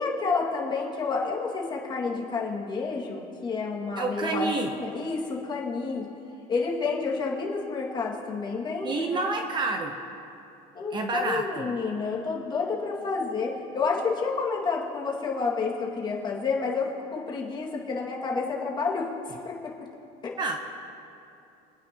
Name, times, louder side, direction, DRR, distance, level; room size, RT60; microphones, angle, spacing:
voice 1, 0.0-6.1 6.5-9.3 10.7-19.1 19.4-19.7 20.2-20.3, left 4 dB, 25° left, -3 dB, 2.0 m, -29 dB
voice 2, 4.0-4.7 8.8-10.0 10.9-11.4 20.4-20.6, right 3 dB, 25° right, 4 dB, 0.8 m, -28 dB
25.0 x 9.3 x 2.9 m, 2.7 s
cardioid pair, 150°, 17 cm